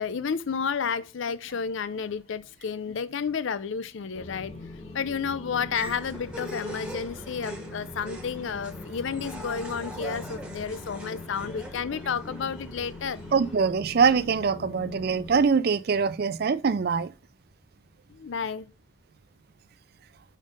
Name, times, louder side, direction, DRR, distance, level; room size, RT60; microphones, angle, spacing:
voice 1, 0.0-4.5 4.9-13.2 18.1-18.7, left 6 dB, 65° left, 0.5 m, -31 dB
sound 1, 4.1-15.5, left 2 dB, 30° left, 1.4 m, -42 dB
sound 2, 5.7-13.6, right 1 dB, 5° right, 1.0 m, -42 dB
voice 2, 13.3-17.1, right 5 dB, 50° right, 0.4 m, -23 dB
5.3 x 5.2 x 5.2 m
head